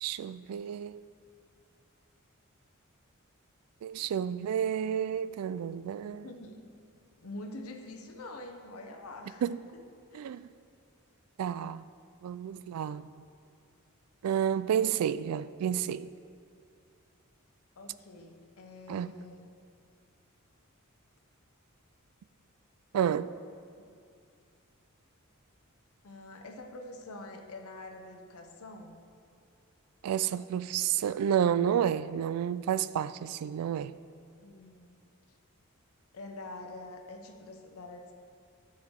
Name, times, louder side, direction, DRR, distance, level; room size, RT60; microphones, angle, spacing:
voice 1, 0.0-1.0 3.8-6.3 9.4-9.6 10.1-10.5 11.4-11.8 12.2-13.1 14.2-16.1 18.9-19.1 22.9-23.3 30.0-34.0, right 9 dB, 85° right, 0.3 m, -30 dB
voice 2, 6.1-6.8 7.2-9.4 9.7-9.8 10.1-10.4 17.8-19.5 26.0-29.0 34.4-35.0 35.3-35.4 36.1-38.1, left 2 dB, 75° left, 0.7 m, -46 dB
13.0 x 5.7 x 3.7 m
head